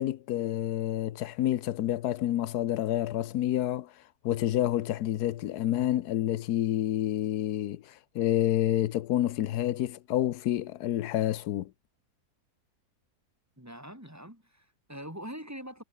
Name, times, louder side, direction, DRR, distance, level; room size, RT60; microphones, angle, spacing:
voice 1, 0.0-3.9 4.2-11.7, left 13 dB, 85° left, 1.3 m, -28 dB
voice 2, 13.6-15.8, equal, 10° right, 6.8 m, -43 dB
omnidirectional pair, 1.6 m